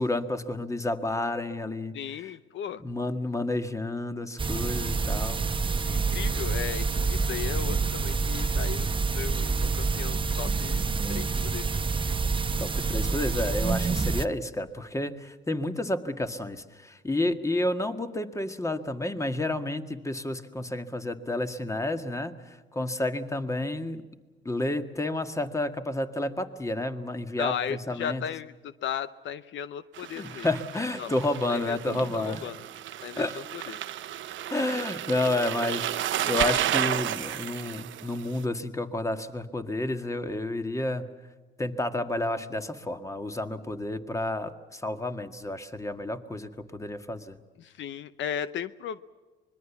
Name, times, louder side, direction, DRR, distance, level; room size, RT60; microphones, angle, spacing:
voice 1, 0.0-2.3 2.8-5.4 12.6-24.0 24.5-28.2 30.2-32.5 33.2-33.4 34.5-41.1 41.6-47.4, left 2 dB, 15° left, 8 dB, 1.8 m, -30 dB
voice 2, 1.9-2.8 5.9-10.8 11.1-11.8 27.4-30.5 31.0-31.1 31.5-32.6 33.0-33.8 47.6-49.0, left 9 dB, 70° left, 14 dB, 0.7 m, -36 dB
sound 1, 4.4-14.3, right 4 dB, 25° right, 0.9 m, -27 dB
sound 2, 29.9-38.4, right 12 dB, 75° right, 1.0 m, -32 dB
25.0 x 21.5 x 7.2 m, 1.3 s
cardioid pair, 90°, 20 cm